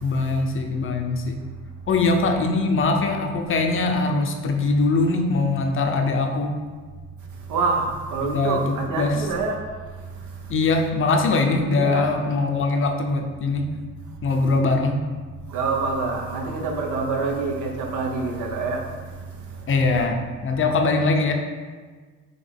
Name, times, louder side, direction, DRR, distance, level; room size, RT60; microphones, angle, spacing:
voice 1, 0.0-1.4 1.9-6.5 8.3-9.1 10.5-13.7 14.2-15.0 19.7-21.3, left 3 dB, 45° left, 3 dB, 0.6 m, -22 dB
voice 2, 7.5-9.6 11.8-12.1 15.5-19.0 19.7-19.8, right 4 dB, 75° right, 1 dB, 0.7 m, -26 dB
4.0 x 3.2 x 3.5 m, 1.5 s
cardioid pair, 90°, 30 cm